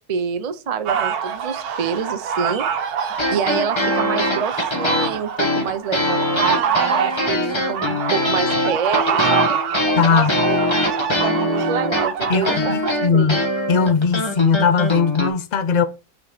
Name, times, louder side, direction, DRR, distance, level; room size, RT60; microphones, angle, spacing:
voice 1, 0.0-2.7 3.3-9.6 10.1-10.6 11.2-13.4, right 6 dB, 55° right, 0.4 m, -27 dB
sound 1, 0.9-12.9, right 7 dB, 80° right, 1.3 m, -25 dB
sound 2, 3.1-15.3, left 1 dB, 20° left, 1.0 m, -22 dB
voice 2, 10.0-10.3 12.3-15.8, left 6 dB, 85° left, 0.4 m, -19 dB
5.9 x 3.9 x 4.8 m
omnidirectional pair, 1.6 m